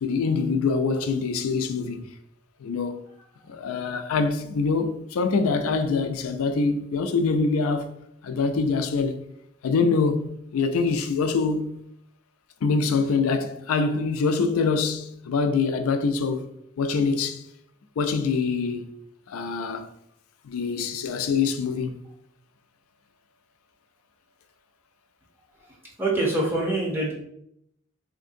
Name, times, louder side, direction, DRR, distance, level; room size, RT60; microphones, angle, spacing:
voice 1, 0.0-2.1 2.6-3.0 3.5-7.9 8.2-9.2 9.6-11.8 12.6-16.5 16.8-17.4 18.0-18.9 19.3-19.9 20.4-22.0, left 4 dB, 90° left, 0.4 m, -24 dB
voice 2, 26.0-27.1, right 2 dB, 10° right, 0.7 m, -24 dB
3.5 x 2.6 x 2.6 m
head